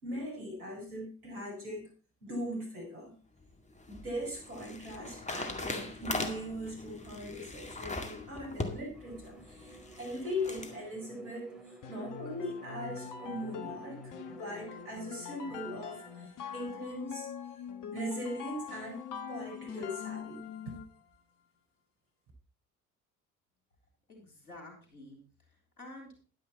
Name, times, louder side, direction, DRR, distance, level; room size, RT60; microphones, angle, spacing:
voice 1, 0.0-1.9 2.2-3.1 3.9-17.3 17.9-20.8, equal, 80° right, 0 dB, 4.9 m, -40 dB
sound 1, 3.4-10.8, left 2 dB, 15° left, 2.1 m, -40 dB
Bowed string instrument, 8.9-16.4, right 2 dB, ahead, 3.5 m, -53 dB
sound 2, 11.8-21.0, left 8 dB, 45° left, 1.6 m, -43 dB
voice 2, 24.1-26.3, left 1 dB, 85° left, 1 dB, 3.8 m, -51 dB
11.0 x 10.0 x 4.2 m, 0.37 s
figure-of-eight pair, 55°, 43 cm